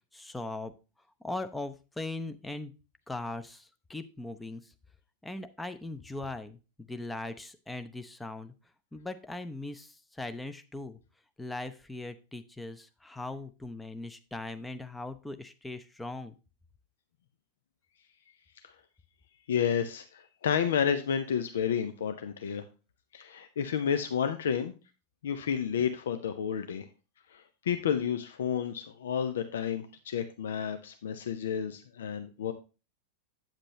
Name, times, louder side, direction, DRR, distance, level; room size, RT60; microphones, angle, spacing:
voice 1, 0.1-0.7 1.2-2.7 3.1-4.6 5.2-6.6 6.9-8.5 8.9-11.0 11.4-16.3, left 2 dB, 5° left, 9 dB, 0.7 m, -39 dB
voice 2, 19.5-22.6 23.1-24.8 25.2-26.9 27.3-32.5, left 8 dB, 60° left, 9 dB, 0.6 m, -31 dB
8.9 x 7.6 x 3.1 m, 0.31 s
figure-of-eight pair, 90°, 0 cm